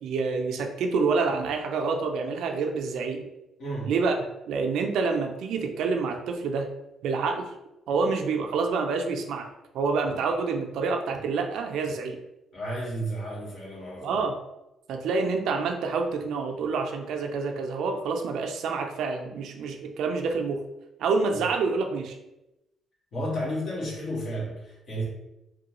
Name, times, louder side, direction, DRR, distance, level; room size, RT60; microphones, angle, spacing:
voice 1, 0.0-3.3 3.9-4.2 4.5-6.7 7.0-7.5 7.9-9.5 9.7-12.2 14.0-14.4 14.9-20.6 21.0-22.2, right 4 dB, 80° right, 4 dB, 0.4 m, -27 dB
voice 2, 3.6-3.9 12.5-14.2 23.1-25.0, equal, 70° left, -5 dB, 1.4 m, -32 dB
3.1 x 2.2 x 2.9 m, 0.93 s
cardioid pair, 90°, 0 cm